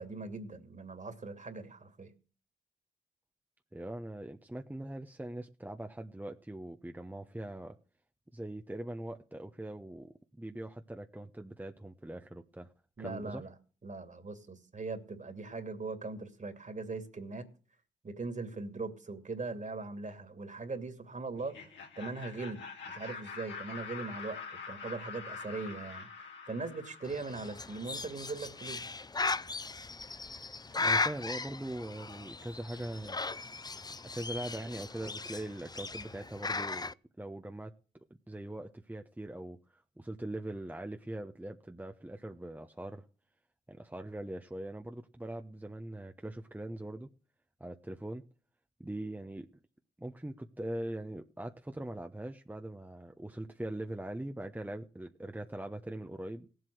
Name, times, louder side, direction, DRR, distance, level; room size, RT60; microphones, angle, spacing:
voice 1, 0.0-2.1 13.0-13.5 13.8-17.5 18.0-21.7 22.0-26.1 26.5-28.8, right 3 dB, 40° right, 2.7 m, -40 dB
voice 2, 3.7-7.8 8.3-12.7 13.0-13.4 30.8-33.2 34.1-37.7 38.3-43.0 43.7-47.1 47.6-48.2 48.8-49.5 50.0-56.5, right 1 dB, 10° right, 1.0 m, -41 dB
Laughter, 21.3-28.1, left 5 dB, 70° left, 2.9 m, -45 dB
Bird, 27.1-36.9, left 3 dB, 20° left, 0.6 m, -37 dB
17.0 x 7.9 x 6.4 m
hypercardioid pair, 40°, 19 cm